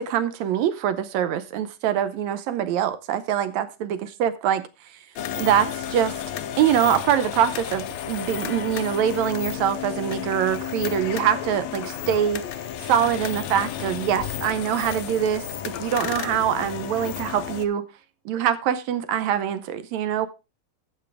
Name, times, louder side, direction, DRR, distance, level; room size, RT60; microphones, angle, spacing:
voice 1, 0.0-4.6 5.4-6.2 6.6-17.8 18.3-20.3, right 9 dB, 75° right, 1.7 m, -24 dB
sound 1, 5.2-17.7, left 10 dB, 85° left, 1.6 m, -32 dB
12.0 x 8.1 x 3.5 m
omnidirectional pair, 4.0 m